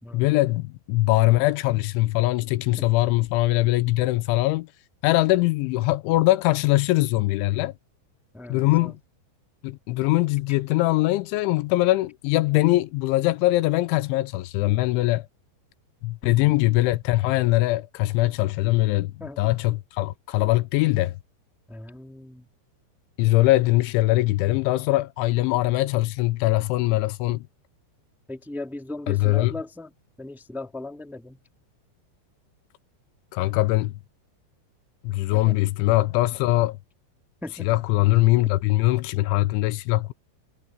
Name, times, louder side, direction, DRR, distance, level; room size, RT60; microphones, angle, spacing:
voice 1, 0.1-4.7 5.0-7.7 8.5-9.0 9.6-15.3 16.0-19.1 19.4-21.2 23.2-27.4 29.1-29.5 33.3-33.9 35.0-36.8 37.6-40.1, left 18 dB, 85° left, 3.1 m, -22 dB
voice 2, 8.3-8.9 16.2-16.5 19.2-19.4 21.7-22.5 28.3-29.9 30.2-31.4 35.3-35.6 37.4-37.7, left 2 dB, ahead, 2.1 m, -38 dB
omnidirectional pair, 5.5 m